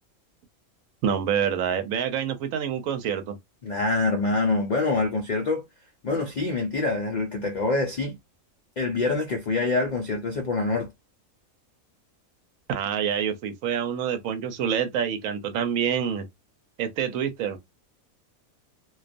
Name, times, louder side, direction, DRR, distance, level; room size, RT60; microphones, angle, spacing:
voice 1, 1.0-3.3 12.7-16.3 16.8-17.6, right 8 dB, 75° right, 1.0 m, -27 dB
voice 2, 3.6-5.6 6.0-8.2 8.8-10.9, left 3 dB, 70° left, 0.4 m, -25 dB
2.4 x 2.3 x 2.4 m
omnidirectional pair, 1.5 m